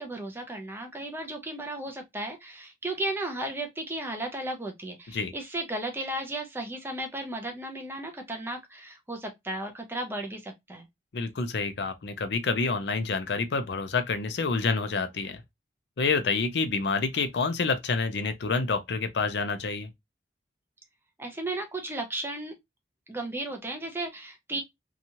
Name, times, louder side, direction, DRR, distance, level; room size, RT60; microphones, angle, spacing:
voice 1, 0.0-10.9 21.2-22.5 23.1-24.6, right 1 dB, 10° right, 0.5 m, -35 dB
voice 2, 11.1-15.4 16.0-19.9, left 4 dB, 70° left, 0.5 m, -28 dB
2.9 x 2.3 x 2.7 m
head